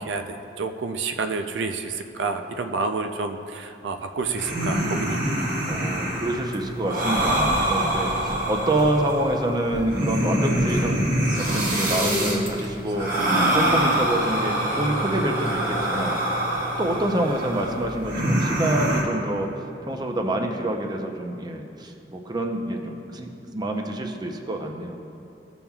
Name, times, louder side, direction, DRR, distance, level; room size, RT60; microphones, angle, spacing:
voice 1, 0.0-5.6, right 4 dB, 85° right, 6 dB, 0.5 m, -29 dB
sound 1, 4.2-19.0, right 1 dB, 50° right, 1.6 m, -25 dB
voice 2, 5.6-13.1 13.4-16.1 16.8-19.5 19.9-25.0, right 1 dB, 25° right, 3 dB, 0.6 m, -27 dB
15.0 x 7.1 x 2.3 m, 2.6 s
head